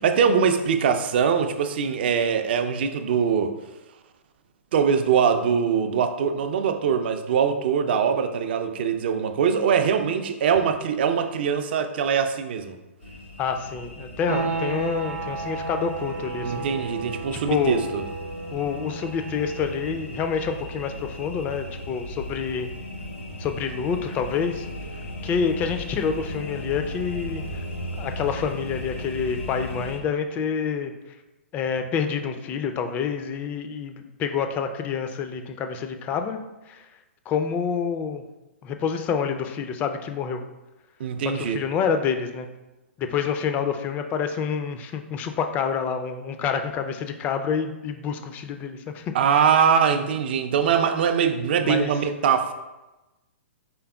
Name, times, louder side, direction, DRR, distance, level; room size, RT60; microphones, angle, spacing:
voice 1, 0.0-3.5 4.7-12.7 16.4-18.0 41.0-41.6 49.1-52.5, right 7 dB, 50° right, 8 dB, 0.4 m, -22 dB
sound 1, 13.0-30.0, left 1 dB, 75° left, 0.8 m, -36 dB
voice 2, 13.4-16.7 17.5-17.8 18.5-22.7 23.4-24.7 25.2-27.4 28.0-30.9 31.5-36.4 36.7-36.9 37.3-38.2 38.6-40.4 41.3-42.5 43.0-49.1 51.6-51.9, left 6 dB, 25° left, 7 dB, 0.3 m, -27 dB
sound 2, 14.3-24.8, right 4 dB, 80° right, 0.7 m, -36 dB
4.5 x 3.4 x 2.2 m, 1.0 s
figure-of-eight pair, 115°, 7 cm